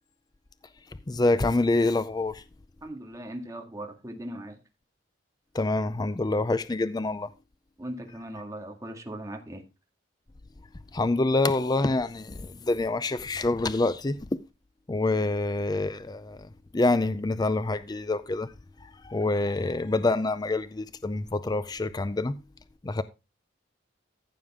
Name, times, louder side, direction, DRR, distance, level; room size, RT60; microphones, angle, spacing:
voice 1, 1.1-2.4 5.5-7.3 10.9-14.4 14.9-18.5 18.8-22.4 22.8-23.0, left 2 dB, 20° left, 0.4 m, -26 dB
voice 2, 2.8-4.6 7.8-9.6, right 1 dB, 15° right, 1.9 m, -39 dB
14.5 x 7.0 x 3.6 m
head